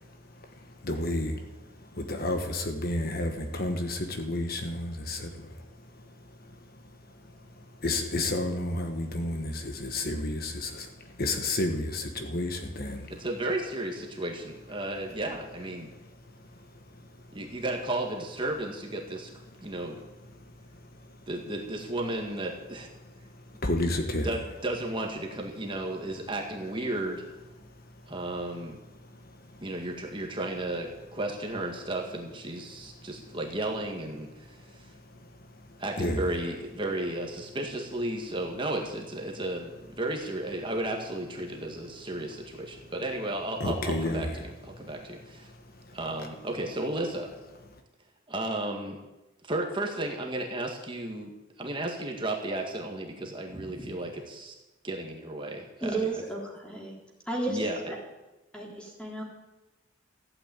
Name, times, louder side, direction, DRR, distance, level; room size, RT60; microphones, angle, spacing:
voice 1, 0.8-1.4 1.9-5.6 7.8-13.2 13.8-14.0 14.6-14.7 15.3-15.7 22.7-22.8 23.6-24.7 25.0-25.4 26.6-26.7 36.0-36.4 43.6-44.5 47.3-47.4, left 1 dB, 50° left, 5 dB, 1.3 m, -31 dB
voice 2, 13.1-15.9 17.3-19.3 19.6-20.0 21.3-22.9 24.2-27.2 28.0-28.8 29.6-34.9 35.8-45.5 45.9-47.3 48.3-49.0 49.4-54.5 54.8-56.2 57.5-57.8, right 1 dB, 25° right, 1 dB, 1.7 m, -34 dB
voice 3, 53.5-53.9 55.8-56.9 57.3-57.6 57.9-58.0 58.5-59.2, right 2 dB, 5° left, -2 dB, 3.5 m, -33 dB
15.0 x 8.9 x 9.1 m, 1.1 s
head